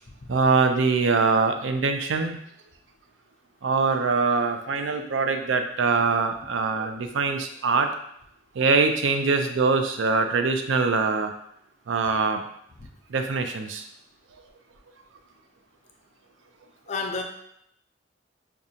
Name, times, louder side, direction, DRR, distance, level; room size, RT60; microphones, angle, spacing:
voice 1, 0.3-2.4 3.6-7.9 8.6-11.3 11.9-12.4 13.1-13.8, right 4 dB, 85° right, 6 dB, 0.4 m, -23 dB
voice 2, 16.9-17.2, left 4 dB, 35° left, 3 dB, 0.4 m, -31 dB
4.9 x 2.3 x 2.7 m, 0.72 s
head